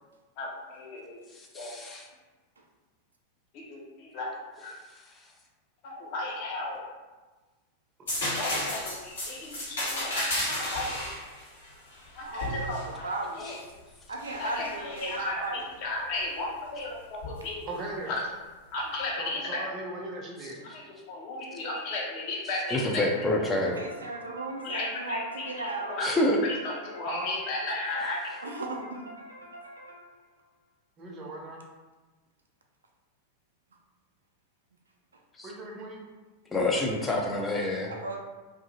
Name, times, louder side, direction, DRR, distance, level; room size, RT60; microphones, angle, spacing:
voice 1, 0.4-1.2 1.5-1.7 3.5-4.8 5.8-6.8 8.3-11.1 12.1-13.1 13.4-13.6 14.4-17.7 18.1-18.3 18.7-19.7 20.7-23.3 24.6-28.3, left 2 dB, 45° left, -3 dB, 0.7 m, -35 dB
voice 2, 1.3-2.0 22.7-23.8 26.0-26.4 35.4-35.5 36.5-37.9, left 1 dB, 15° left, -1 dB, 0.4 m, -27 dB
sound 1, 8.1-13.7 14.2-15.2 17.2-17.4, left 1 dB, 70° left, 1.1 m, -33 dB
voice 3, 12.2-13.6 14.1-15.6 23.6-26.0 28.4-29.0 37.9-38.2, right 2 dB, 75° right, 1 dB, 0.4 m, -36 dB
voice 4, 17.7-18.1 19.2-20.6 27.1-27.3 31.0-31.6 35.4-36.0, right 2 dB, 30° right, -1 dB, 0.6 m, -38 dB
sound 2, 22.5-30.3, right 1 dB, 90° left, 0.6 m, -47 dB
2.6 x 2.4 x 2.7 m, 1.2 s
figure-of-eight pair, 90°, 0 cm